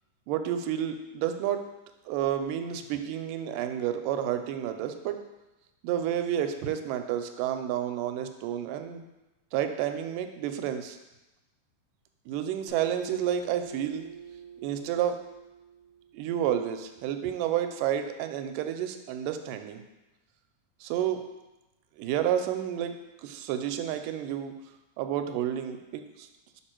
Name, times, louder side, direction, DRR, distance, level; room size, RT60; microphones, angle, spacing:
voice 1, 0.3-1.6 2.1-5.2 5.8-9.0 9.5-11.0 12.3-14.1 14.6-15.2 16.1-19.8 20.8-21.2 22.0-24.5 25.0-26.3, right 10 dB, 85° right, 7 dB, 2.1 m, -30 dB
Acoustic guitar, 12.7-16.2, right 6 dB, 70° left, 0.5 m, -44 dB
5.3 x 4.7 x 4.4 m, 1.0 s
omnidirectional pair, 3.8 m